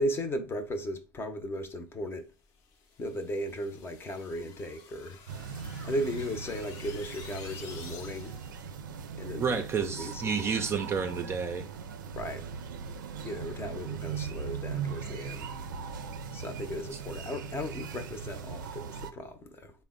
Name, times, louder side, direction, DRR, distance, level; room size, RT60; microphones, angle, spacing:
voice 1, 0.0-2.3 3.0-5.2 5.8-8.4 9.2-10.6 12.2-12.5 13.2-15.6 16.3-19.7, equal, 25° left, 0.7 m, -36 dB
sound 1, 2.6-8.6, left 6 dB, 60° left, 0.8 m, -51 dB
sound 2, 5.3-19.1, right 6 dB, 90° right, 0.4 m, -39 dB
voice 2, 9.4-11.7 16.9-17.0, right 6 dB, 25° right, 0.4 m, -30 dB
3.6 x 2.1 x 3.6 m
supercardioid pair, 105°, 10 cm